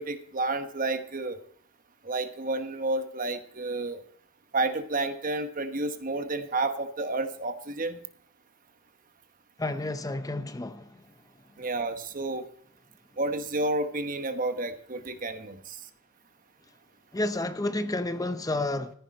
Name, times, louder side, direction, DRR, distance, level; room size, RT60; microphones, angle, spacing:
voice 1, 0.0-1.4 2.0-4.0 4.5-8.0 11.6-12.4 13.2-15.8, right 2 dB, 40° right, 1.1 m, -30 dB
voice 2, 9.6-10.9 17.1-18.9, left 2 dB, 15° left, 0.6 m, -30 dB
14.5 x 10.5 x 4.3 m
head